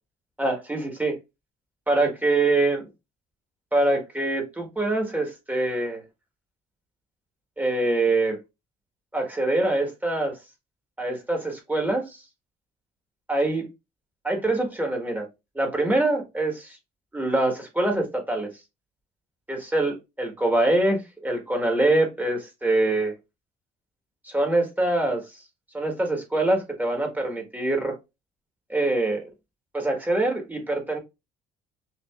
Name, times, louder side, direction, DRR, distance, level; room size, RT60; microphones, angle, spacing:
voice 1, 0.4-1.1 1.9-2.8 3.7-6.0 7.6-8.4 9.1-10.3 11.0-12.2 13.3-13.6 14.2-15.3 15.5-16.8 17.1-18.5 19.5-23.1 24.2-25.2 25.7-28.0 28.7-29.2 29.7-31.0, right 2 dB, 10° right, 1.4 m, -24 dB
5.9 x 2.8 x 2.4 m
cardioid pair, 110°, 17 cm